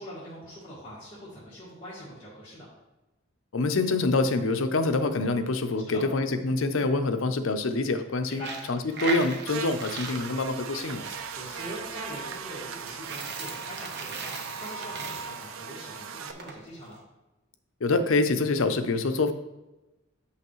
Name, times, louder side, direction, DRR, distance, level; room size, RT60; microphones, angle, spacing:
voice 1, 0.0-2.7 5.9-6.0 8.3-8.5 11.1-17.0, equal, 25° left, -9 dB, 1.8 m, -42 dB
voice 2, 3.5-11.1 17.8-19.3, left 3 dB, 70° left, 8 dB, 0.6 m, -26 dB
Coin (dropping), 8.3-16.5, right 4 dB, 55° right, 0.9 m, -39 dB
Buzz, 9.5-16.3, right 6 dB, 75° right, 0.5 m, -39 dB
8.3 x 5.7 x 3.1 m, 1.0 s
head